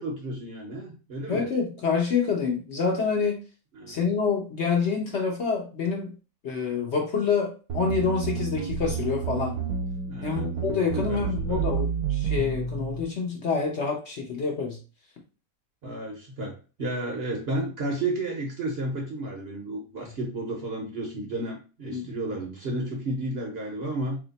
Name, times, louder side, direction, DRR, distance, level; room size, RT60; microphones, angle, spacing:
voice 1, 0.0-1.5 3.7-4.0 10.0-10.5 10.9-11.6 15.8-24.2, right 2 dB, 50° right, 0 dB, 0.8 m, -32 dB
voice 2, 1.3-3.4 3.9-6.1 6.4-9.6 10.2-14.8 21.9-22.1, left 5 dB, 55° left, 0 dB, 0.9 m, -27 dB
sound 1, 7.7-13.0, right 6 dB, 70° right, 1.2 m, -30 dB
3.1 x 2.8 x 4.0 m, 0.34 s
omnidirectional pair, 1.7 m